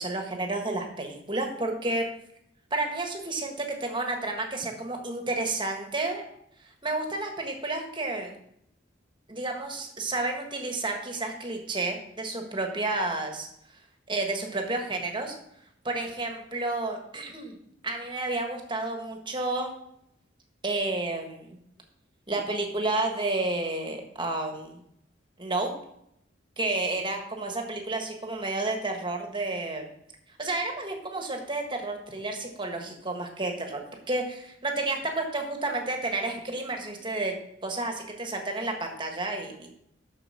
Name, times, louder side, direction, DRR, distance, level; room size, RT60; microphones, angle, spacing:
voice 1, 0.0-2.1 2.7-6.2 6.8-8.4 9.3-13.5 14.1-15.4 15.8-17.5 17.8-19.7 20.6-21.6 22.3-24.8 25.4-25.7 26.6-29.8 30.4-37.3 37.6-39.7, right 2 dB, 25° right, 3 dB, 1.4 m, -31 dB
7.8 x 6.4 x 6.5 m, 0.76 s
head